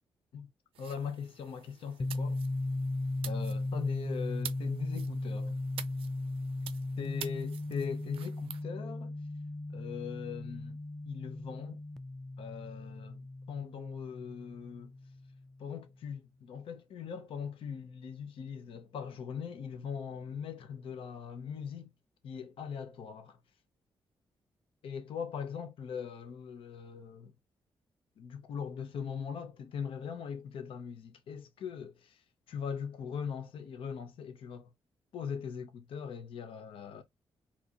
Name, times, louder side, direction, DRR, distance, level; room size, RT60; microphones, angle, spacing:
sound 1, 0.7-8.6, right 10 dB, 85° right, 0.4 m, -48 dB
voice 1, 0.8-2.4 3.2-5.6 7.0-9.1 9.7-10.8 11.0-11.8 12.4-13.2 13.5-14.9 15.6-21.9 22.2-23.4 24.8-27.3 28.2-32.2 32.5-34.7 35.1-37.0, left 7 dB, 80° left, 0.7 m, -40 dB
sound 2, 2.0-15.6, left 2 dB, 5° left, 0.4 m, -37 dB
4.3 x 2.9 x 2.4 m
cardioid pair, 105°, 9 cm